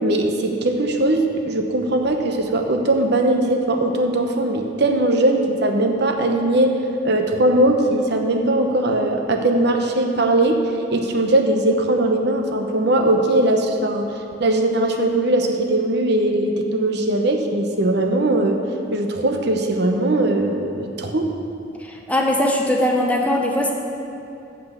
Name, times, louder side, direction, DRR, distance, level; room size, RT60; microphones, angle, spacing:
voice 1, 0.0-6.7 7.0-10.6 10.9-14.0 14.4-18.6 18.9-21.3, right 1 dB, 65° right, 4 dB, 0.9 m, -20 dB
voice 2, 21.9-23.7, left 1 dB, 10° left, -1 dB, 0.8 m, -20 dB
7.9 x 6.3 x 7.2 m, 2.7 s
head